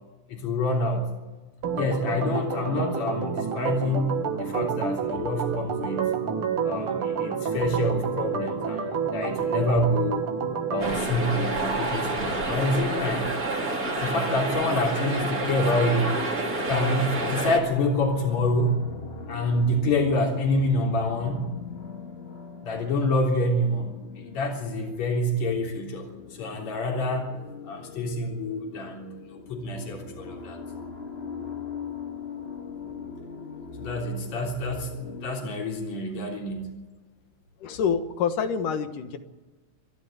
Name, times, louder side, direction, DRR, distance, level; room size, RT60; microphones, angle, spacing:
voice 1, 0.3-1.1 1.8-6.1 6.6-10.2 10.7-13.3 14.0-16.1 16.7-18.7 19.3-21.4 22.6-23.9 24.2-27.3 27.6-30.6 33.8-36.7, left 1 dB, 60° left, 0 dB, 4.7 m, -27 dB
Organ, 1.6-11.0, right 6 dB, 50° right, 2.2 m, -29 dB
sound 1, 10.8-17.6, right 2 dB, 30° right, 3.0 m, -28 dB
sound 2, 16.6-35.3, left 5 dB, 25° left, 1.6 m, -40 dB
voice 2, 37.6-39.2, left 7 dB, 80° left, 8 dB, 2.9 m, -27 dB
27.0 x 11.5 x 9.4 m, 1.2 s
omnidirectional pair, 3.6 m